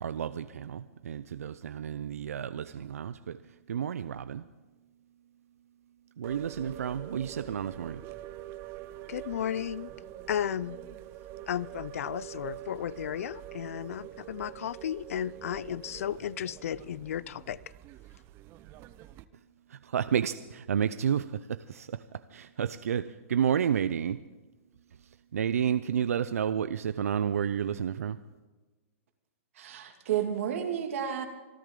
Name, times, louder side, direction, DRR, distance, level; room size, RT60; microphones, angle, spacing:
voice 1, 0.0-4.5 6.2-8.0 19.7-24.2 25.0-28.2, right 8 dB, 85° right, 13 dB, 0.5 m, -31 dB
sound 1, 6.2-19.2, right 12 dB, 30° right, 0.6 m, -45 dB
voice 2, 9.1-9.9 10.3-10.8 11.5-17.6, left 10 dB, 75° left, 22 dB, 0.4 m, -34 dB
voice 3, 29.6-31.3, right 9 dB, 65° right, 5 dB, 2.3 m, -31 dB
26.5 x 11.0 x 3.8 m, 1.2 s
hypercardioid pair, 135°, 8 cm